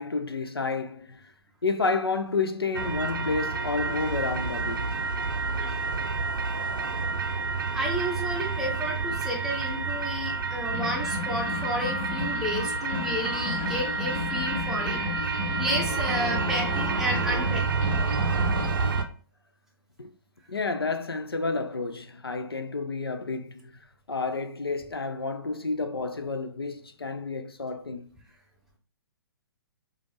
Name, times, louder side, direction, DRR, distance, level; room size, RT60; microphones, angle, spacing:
voice 1, 0.0-1.3 1.6-4.9 20.0-20.1 20.5-23.8 24.1-28.1, left 4 dB, 80° left, 0.5 m, -30 dB
sound 1, 2.7-19.0, right 4 dB, 60° right, 0.5 m, -29 dB
voice 2, 7.7-15.0 15.6-17.9, equal, 5° right, 0.8 m, -32 dB
sound 2, 10.7-19.0, left 5 dB, 25° left, 0.6 m, -34 dB
4.9 x 2.4 x 3.2 m
figure-of-eight pair, 120°, 13 cm